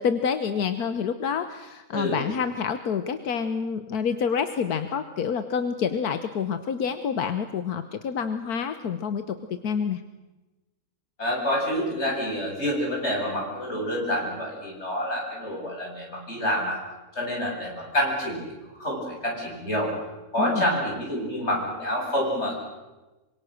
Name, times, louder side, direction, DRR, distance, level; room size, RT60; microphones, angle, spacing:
voice 1, 0.0-10.0 20.4-20.6, left 6 dB, 85° left, 9 dB, 1.6 m, -28 dB
voice 2, 11.2-16.8 17.1-18.4 18.8-19.9 20.3-22.6, equal, 45° left, -1 dB, 8.4 m, -27 dB
26.5 x 25.5 x 6.6 m, 1.1 s
omnidirectional pair, 1.6 m